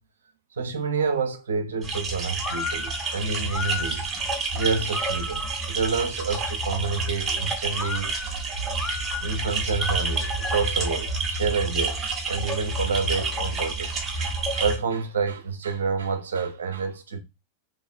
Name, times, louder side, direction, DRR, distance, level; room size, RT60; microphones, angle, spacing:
voice 1, 0.6-4.1 4.5-8.1 9.2-17.2, right 5 dB, 65° right, 0.6 m, -28 dB
sound 1, 1.8-14.8, right 3 dB, 20° right, 0.8 m, -29 dB
sound 2, 2.4-5.7 7.7-10.8, left 5 dB, 15° left, 0.4 m, -35 dB
3.0 x 2.5 x 3.7 m
figure-of-eight pair, 90°, 0 cm